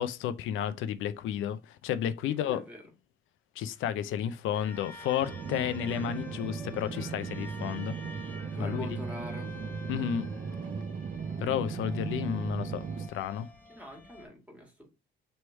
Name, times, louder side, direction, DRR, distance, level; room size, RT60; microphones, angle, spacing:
voice 1, 0.0-2.6 3.6-7.9 8.6-9.0 9.9-10.3 11.4-13.5, left 9 dB, 85° left, 0.5 m, -32 dB
voice 2, 2.5-2.8 8.0-9.5 13.7-14.9, equal, 5° right, 1.7 m, -45 dB
sound 1, 4.5-14.3, left 1 dB, 10° left, 0.8 m, -49 dB
sound 2, 5.2-13.1, right 5 dB, 45° right, 0.5 m, -37 dB
3.2 x 3.0 x 4.4 m
cardioid pair, 90°, 20 cm